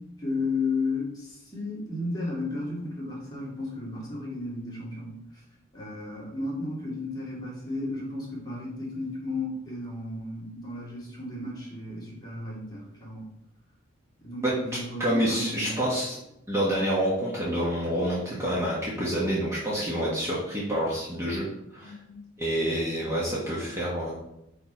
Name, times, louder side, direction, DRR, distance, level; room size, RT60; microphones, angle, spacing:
voice 1, 0.0-5.2 5.7-13.2 14.2-15.8 21.8-22.2, left 3 dB, 20° left, -6 dB, 2.2 m, -34 dB
voice 2, 15.0-16.2 16.5-21.4 21.7-21.9 22.4-24.2, equal, 15° right, -7 dB, 1.1 m, -27 dB
5.3 x 4.6 x 4.3 m, 0.86 s
head